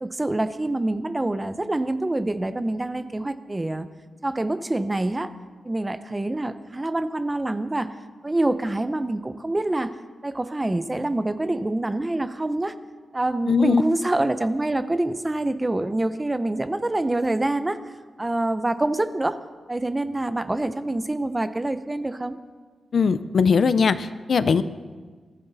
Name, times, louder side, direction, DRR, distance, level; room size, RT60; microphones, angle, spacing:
voice 1, 0.0-3.9 4.2-5.3 5.6-7.9 8.2-9.9 10.2-12.7 13.1-17.8 18.2-19.4 19.7-22.4, right 2 dB, 15° right, 12 dB, 0.6 m, -26 dB
voice 2, 13.5-13.8 22.9-24.6, left 5 dB, 55° left, 14 dB, 0.5 m, -20 dB
21.5 x 14.0 x 4.0 m, 1.4 s
wide cardioid pair, 165°, 0 cm